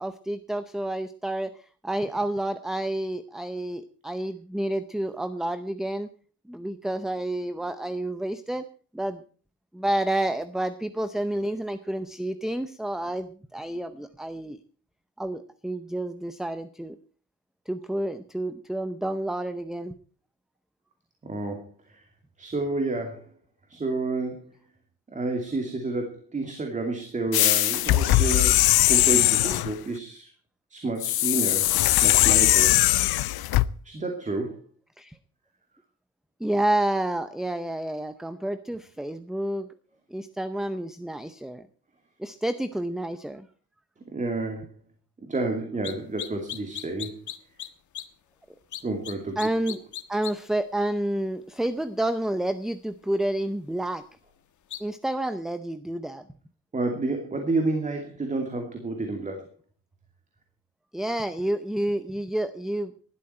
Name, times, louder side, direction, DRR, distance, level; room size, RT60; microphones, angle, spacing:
voice 1, 0.0-1.5 1.8-6.1 6.5-8.6 8.9-9.2 9.7-14.6 15.2-17.0 17.7-19.9 35.0-35.2 36.4-39.7 40.1-41.7 42.2-43.5 49.4-49.8 50.1-54.0 54.8-56.2 60.9-62.9, right 1 dB, ahead, 12 dB, 0.6 m, -29 dB
voice 2, 21.2-21.7 22.4-23.2 23.7-24.4 25.1-30.3 30.7-32.8 33.8-34.6 44.1-44.7 45.3-47.2 48.8-49.4 56.7-59.4, right 2 dB, 20° right, 4 dB, 2.6 m, -30 dB
sound 1, 27.3-29.7 31.0-33.7, left 15 dB, 85° left, 0.7 m, -20 dB
sound 2, 45.8-45.9 46.2-47.7 47.9-48.0 48.7-49.1 49.4-50.3 54.7-54.8, left 11 dB, 55° left, 1.6 m, -35 dB
19.5 x 12.5 x 4.4 m, 0.41 s
cardioid pair, 180°, 36 cm